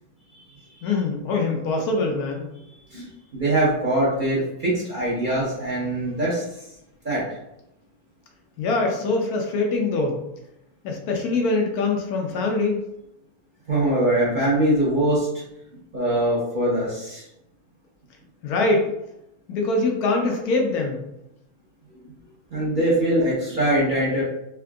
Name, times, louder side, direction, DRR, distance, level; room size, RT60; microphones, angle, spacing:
voice 1, 0.8-2.5 8.6-10.2 10.8-12.8 18.4-18.9 19.5-21.0, left 3 dB, 75° left, 2 dB, 1.1 m, -23 dB
voice 2, 3.3-6.4 7.0-7.2 13.7-15.3 15.9-17.2 22.5-24.2, right 1 dB, 40° right, -7 dB, 0.8 m, -22 dB
3.5 x 2.8 x 2.3 m, 0.85 s
omnidirectional pair, 1.7 m